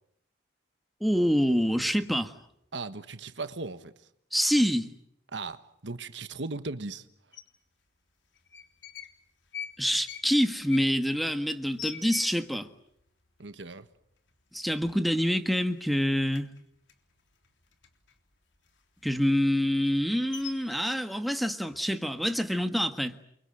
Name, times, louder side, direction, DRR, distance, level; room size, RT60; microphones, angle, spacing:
voice 1, 1.0-2.3 4.3-5.0 9.8-12.7 14.5-16.5 19.0-23.1, equal, ahead, 1.6 m, -26 dB
voice 2, 2.7-3.9 5.3-7.0 13.4-13.9, right 3 dB, 75° right, 1.5 m, -37 dB
sound 1, 7.3-7.4 8.4-9.2 9.5-12.7 13.0-13.1 13.4-13.9 14.3-14.4 14.7-15.5 15.8-18.2 18.5-20.8, left 8 dB, 80° left, 3.6 m, -44 dB
29.5 x 24.0 x 7.8 m
head